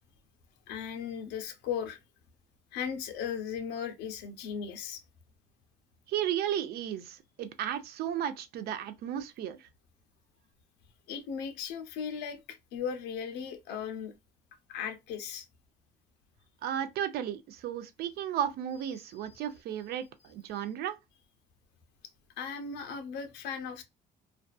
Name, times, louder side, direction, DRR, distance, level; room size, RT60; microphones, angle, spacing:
voice 1, 0.7-2.0 2.7-5.0 11.1-14.1 14.7-15.5 19.2-19.4 22.4-23.8, left 7 dB, 90° left, 0.6 m, -37 dB
voice 2, 6.1-9.7 16.6-21.0, right 10 dB, 70° right, 0.5 m, -34 dB
2.5 x 2.3 x 2.2 m
cardioid pair, 110°, 17 cm